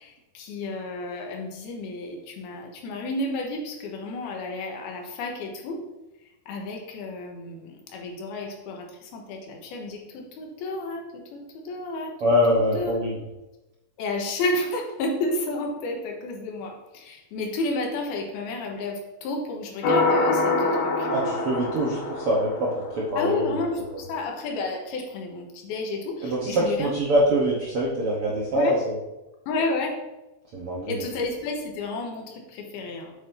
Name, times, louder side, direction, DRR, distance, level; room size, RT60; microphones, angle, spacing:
voice 1, 0.0-5.8 6.5-12.1 12.5-12.9 14.0-21.1 23.2-26.9 28.5-28.8 29.5-29.9 30.9-33.1, left 2 dB, 80° left, 1 dB, 3.1 m, -31 dB
voice 2, 12.2-13.2 21.1-23.6 23.9-24.0 26.2-28.9 30.5-31.0, equal, 90° right, -4 dB, 1.2 m, -24 dB
sound 1, 19.8-23.3, left 2 dB, 65° left, 2.8 m, -25 dB
8.5 x 8.4 x 2.7 m, 1.0 s
omnidirectional pair, 4.5 m